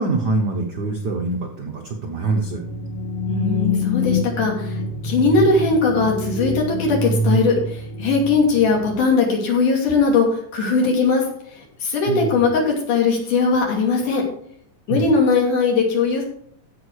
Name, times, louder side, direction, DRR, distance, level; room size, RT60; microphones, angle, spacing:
voice 1, 0.0-2.6 12.1-12.4 14.9-15.1, right 3 dB, 85° right, 2 dB, 0.9 m, -24 dB
sound 1, 2.5-8.9, left 2 dB, 50° left, 2.0 m, -25 dB
voice 2, 3.3-11.2 11.5-14.2 14.9-16.2, left 4 dB, 70° left, -1 dB, 4.2 m, -19 dB
15.0 x 5.7 x 4.7 m, 0.64 s
omnidirectional pair, 3.7 m